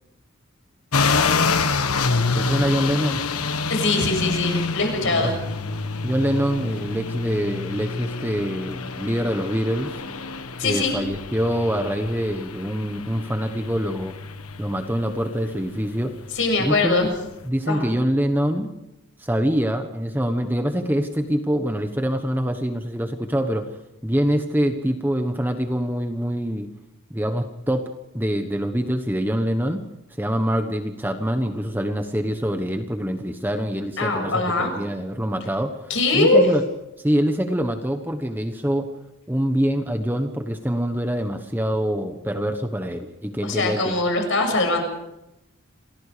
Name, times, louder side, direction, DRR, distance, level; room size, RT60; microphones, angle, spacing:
sound 1, 0.9-17.4, left 4 dB, 85° left, 1.4 m, -27 dB
voice 1, 2.4-3.2 5.1-5.3 6.0-10.0 10.6-14.1 14.6-16.1 16.6-17.1 17.4-18.7 19.2-23.7 24.0-26.7 27.1-27.9 28.1-29.8 30.2-36.6 37.0-38.9 39.3-43.9, equal, 10° right, 6 dB, 1.1 m, -25 dB
voice 2, 3.7-5.3 10.6-10.9 16.3-17.1 17.7-17.8 34.0-34.7 35.9-36.5 43.4-44.8, left 2 dB, 60° left, 4 dB, 6.9 m, -21 dB
28.0 x 19.0 x 5.1 m, 0.89 s
head